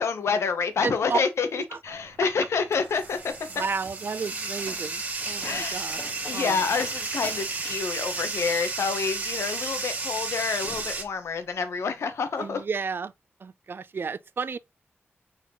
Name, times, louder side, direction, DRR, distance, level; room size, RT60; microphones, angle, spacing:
voice 1, 0.0-3.3 5.4-5.9 6.3-12.6, left 5 dB, 80° left, 0.8 m, -28 dB
voice 2, 0.8-1.2 1.7-1.8 3.5-6.0 6.3-6.6 12.4-13.1 13.4-14.6, right 5 dB, 55° right, 0.4 m, -32 dB
Bathtub (filling or washing), 1.8-11.0, right 3 dB, 35° right, 1.5 m, -33 dB
Slam, 3.3-11.8 12.1-12.6, left 2 dB, 40° left, 1.3 m, -47 dB
4.1 x 3.8 x 2.9 m
cardioid pair, 70°, 5 cm